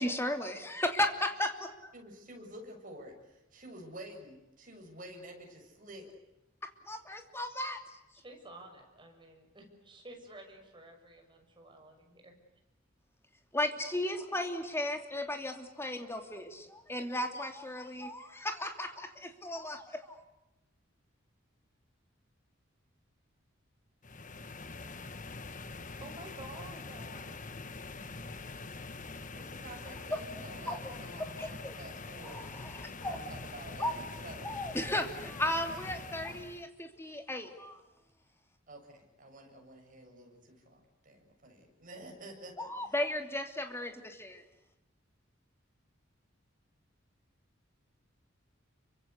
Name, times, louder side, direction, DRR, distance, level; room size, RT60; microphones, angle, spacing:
voice 1, 0.0-1.9 6.8-8.0 13.5-20.2 30.1-30.2 30.7-30.9 31.4-31.8 32.2-33.2 33.8-33.9 34.4-37.8 42.6-44.4, left 1 dB, 10° left, 5 dB, 2.8 m, -35 dB
voice 2, 1.9-6.1 29.3-32.5 33.0-34.5 38.7-42.7, right 1 dB, 40° right, 2 dB, 7.1 m, -49 dB
voice 3, 8.1-12.4 25.9-27.4, right 1 dB, 25° right, 3 dB, 6.5 m, -51 dB
sound 1, 24.0-36.7, left 3 dB, 40° left, 1.3 m, -44 dB
29.5 x 24.5 x 8.3 m, 0.95 s
head